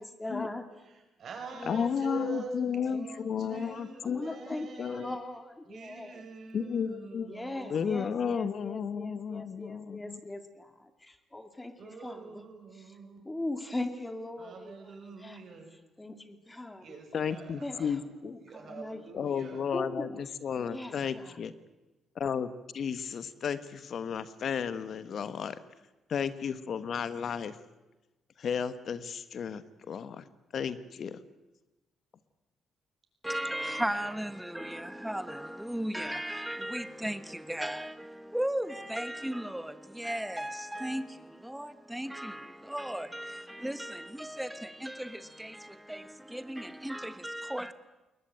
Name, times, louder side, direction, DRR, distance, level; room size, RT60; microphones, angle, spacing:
voice 1, 0.0-0.7 1.6-1.9 2.2-2.4 2.9-6.2 7.3-12.4 13.2-15.4 16.0-16.8 17.6-17.8 18.2-19.0 19.7-20.2 20.7-21.4, left 2 dB, 15° left, 2.4 m, -40 dB
voice 2, 0.8-5.2 5.7-8.5 11.8-13.3 14.4-15.7 16.8-19.6 33.4-33.9, right 4 dB, 55° right, 6.5 m, -45 dB
voice 3, 1.7-4.4 4.8-5.1 6.5-7.3 7.7-10.2 17.1-18.3 19.1-21.5 22.2-25.6 26.1-27.6 28.4-30.2 30.5-31.2, left 7 dB, 60° left, 1.2 m, -33 dB
voice 4, 33.2-47.7, right 1 dB, 5° right, 1.4 m, -36 dB
21.0 x 20.0 x 9.2 m
cardioid pair, 90°, 0 cm